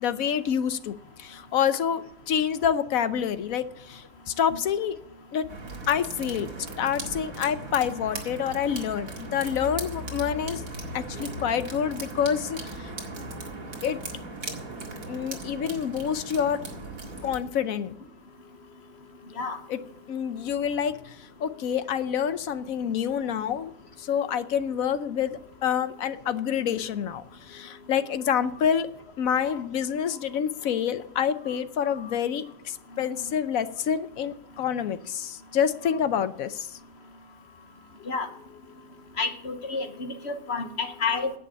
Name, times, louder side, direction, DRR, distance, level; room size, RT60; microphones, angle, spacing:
voice 1, 0.0-5.0 5.3-5.5 5.9-10.6 10.9-12.9 13.8-14.0 15.1-16.6 17.2-18.0 19.7-19.8 20.1-23.7 24.0-28.9 29.2-36.8, left 8 dB, 75° left, 13 dB, 1.2 m, -27 dB
sound 1, 5.5-17.4, right 2 dB, 75° right, 2.3 m, -38 dB
voice 2, 39.2-41.3, left 4 dB, 50° left, 8 dB, 1.4 m, -29 dB
10.5 x 8.4 x 8.2 m, 0.67 s
omnidirectional pair, 1.5 m